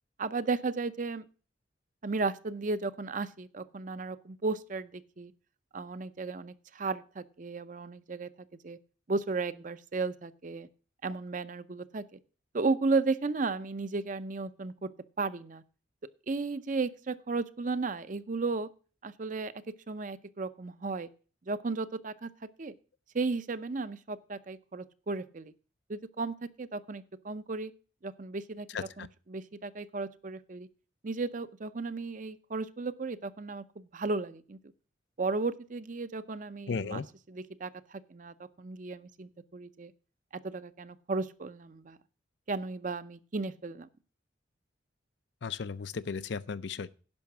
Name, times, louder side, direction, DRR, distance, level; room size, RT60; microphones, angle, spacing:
voice 1, 0.2-1.2 2.0-5.3 5.7-8.3 8.6-8.8 9.1-10.7 11.0-12.0 12.5-14.9 15.2-15.6 16.3-18.7 19.0-19.5 19.9-21.1 21.5-22.3 22.6-22.7 23.1-25.5 25.9-27.7 28.0-28.7 29.0-30.7 31.0-34.6 35.2-37.0 37.3-39.9 40.4-42.0 42.5-43.9, right 3 dB, 40° right, 0.6 m, -34 dB
voice 2, 36.7-37.1 45.4-46.9, left 5 dB, 60° left, 0.5 m, -35 dB
10.5 x 5.7 x 7.1 m
head